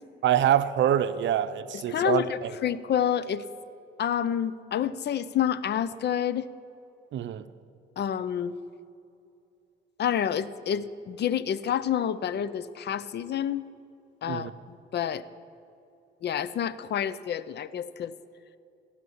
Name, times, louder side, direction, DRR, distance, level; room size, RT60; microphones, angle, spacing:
voice 1, 0.2-2.5 7.1-7.4 14.3-14.5, right 10 dB, 70° right, 13 dB, 0.7 m, -25 dB
voice 2, 1.9-3.4 4.0-6.5 8.0-8.5 10.0-13.7 14.2-15.3 16.2-18.2, left 9 dB, 60° left, 16 dB, 0.6 m, -28 dB
17.0 x 5.9 x 10.0 m, 2.6 s
cardioid pair, 90°, 20 cm